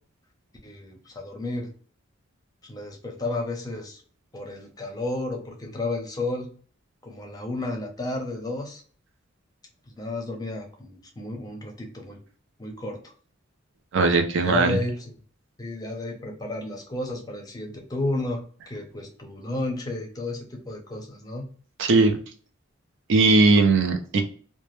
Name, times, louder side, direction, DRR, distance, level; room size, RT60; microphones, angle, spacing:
voice 1, 0.6-1.7 2.6-4.0 4.3-6.5 7.0-8.8 9.9-12.2 12.6-13.1 14.4-15.1 15.6-21.5, left 2 dB, 20° left, 2 dB, 0.5 m, -32 dB
voice 2, 13.9-14.8 21.8-22.2 23.1-24.2, right 3 dB, 65° right, 5 dB, 0.4 m, -19 dB
2.2 x 2.0 x 2.9 m, 0.43 s
head